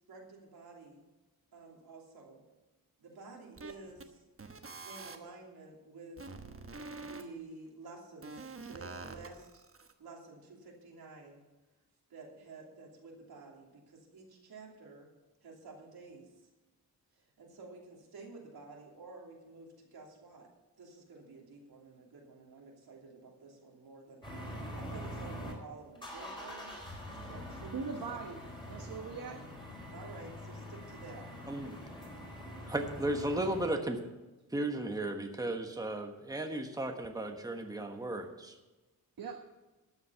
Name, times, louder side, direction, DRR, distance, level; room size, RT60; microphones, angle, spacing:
voice 1, 0.1-1.0 1.5-2.4 3.0-4.2 4.8-6.4 7.0-9.6 10.0-11.4 12.1-15.1 15.4-16.5 17.1-20.5 20.8-28.2 29.9-31.3, right 3 dB, 90° right, -1 dB, 3.0 m, -51 dB
sound 1, 3.6-4.0 4.4-5.2 6.2-7.2 8.2-9.9, right 3 dB, 35° right, 1.2 m, -46 dB
sound 2, 24.2-25.5 25.9-33.7, equal, 15° left, 4.2 m, -44 dB
voice 2, 27.7-29.4 39.2-39.5, right 5 dB, 70° right, 3 dB, 1.2 m, -41 dB
voice 3, 31.5-31.8 32.7-34.0 34.5-38.6, right 1 dB, 10° right, 4 dB, 1.3 m, -35 dB
13.0 x 7.4 x 6.9 m, 1.1 s
wide cardioid pair, 90°, 37 cm